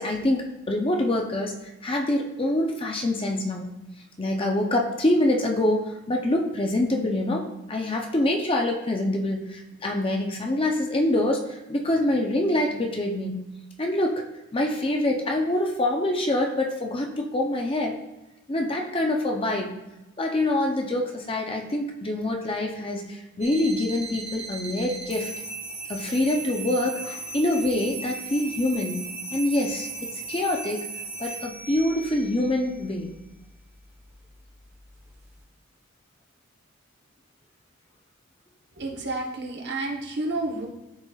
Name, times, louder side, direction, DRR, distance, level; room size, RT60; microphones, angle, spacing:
voice 1, 0.0-1.6 1.8-3.7 4.2-13.5 13.8-14.2 14.5-18.0 18.5-19.7 20.2-25.3 25.9-30.8 31.2-33.1, left 1 dB, 25° left, 2 dB, 0.6 m, -25 dB
sound 1, 23.4-35.4, right 3 dB, 10° right, 1.0 m, -38 dB
voice 2, 38.8-40.7, right 2 dB, 50° right, 0 dB, 1.1 m, -30 dB
12.0 x 4.2 x 2.4 m, 1.0 s
head